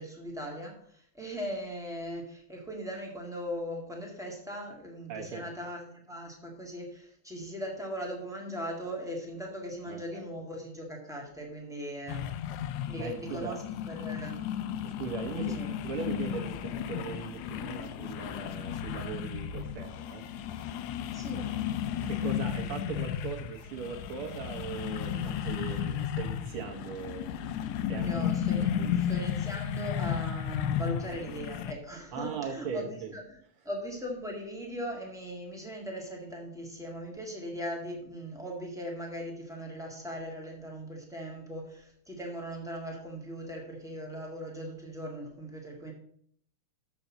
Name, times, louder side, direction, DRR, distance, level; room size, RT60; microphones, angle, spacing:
voice 1, 0.0-12.3 12.9-13.6 13.9-14.4 15.4-15.7 21.1-21.5 28.0-33.2 33.6-45.9, equal, 5° right, -1 dB, 0.4 m, -39 dB
voice 2, 5.1-5.4 9.9-10.2 13.0-13.6 14.8-20.3 22.1-27.3 27.9-29.1 32.1-33.1, right 7 dB, 70° right, 2 dB, 1.3 m, -39 dB
sound 1, 12.1-31.7, left 9 dB, 75° left, 1.9 m, -34 dB
7.2 x 5.3 x 7.3 m, 0.62 s
omnidirectional pair, 3.6 m